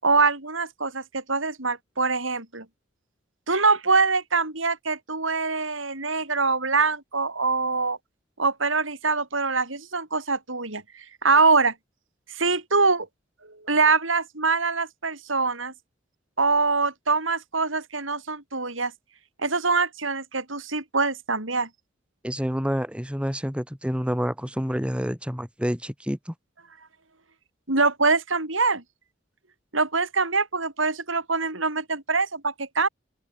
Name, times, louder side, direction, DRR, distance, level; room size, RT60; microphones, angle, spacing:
voice 1, 0.0-2.7 3.5-8.0 8.4-11.7 12.3-13.1 13.4-15.7 16.4-18.9 19.4-21.7 27.7-28.8 29.7-32.9, right 4 dB, 90° right, 7.7 m, -24 dB
voice 2, 22.2-26.3, equal, 5° right, 7.5 m, -28 dB
open air
head